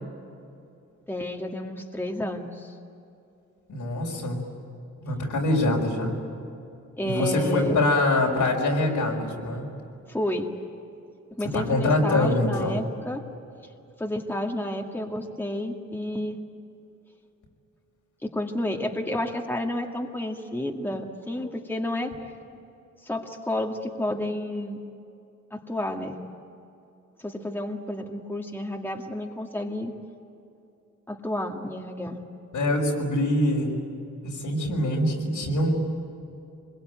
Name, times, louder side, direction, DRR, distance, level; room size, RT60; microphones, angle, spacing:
voice 1, 1.1-2.7 7.0-7.8 10.1-10.5 11.4-13.2 14.0-16.4 18.2-22.1 23.0-24.8 25.5-26.2 27.2-29.9 31.1-32.2, left 1 dB, 5° left, 1 dB, 2.0 m, -30 dB
voice 2, 3.7-4.4 5.0-6.1 7.0-9.7 11.5-12.8 32.5-33.8 34.2-35.7, left 1 dB, 85° left, 0 dB, 5.6 m, -24 dB
25.5 x 22.0 x 9.3 m, 2.7 s
wide cardioid pair, 105°, 30 cm